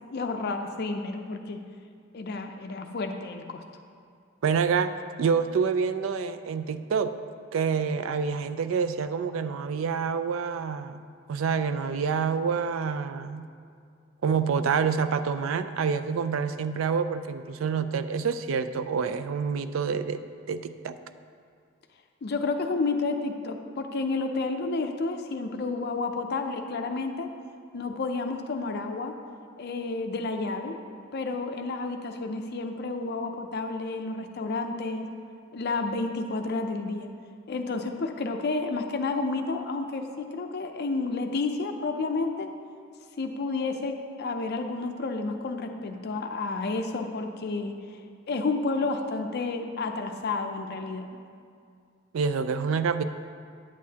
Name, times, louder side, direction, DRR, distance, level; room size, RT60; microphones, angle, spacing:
voice 1, 0.1-1.6 2.1-3.6 22.2-27.3 27.7-29.2 29.6-30.7 31.1-35.1 35.5-37.1 37.5-42.5 43.2-47.8 48.3-51.2, left 3 dB, 55° left, 5 dB, 0.5 m, -30 dB
voice 2, 4.4-7.1 7.5-13.5 14.2-20.2 20.5-20.9 52.1-53.0, right 6 dB, 80° right, 11 dB, 0.4 m, -27 dB
9.7 x 8.3 x 2.8 m, 2.3 s
head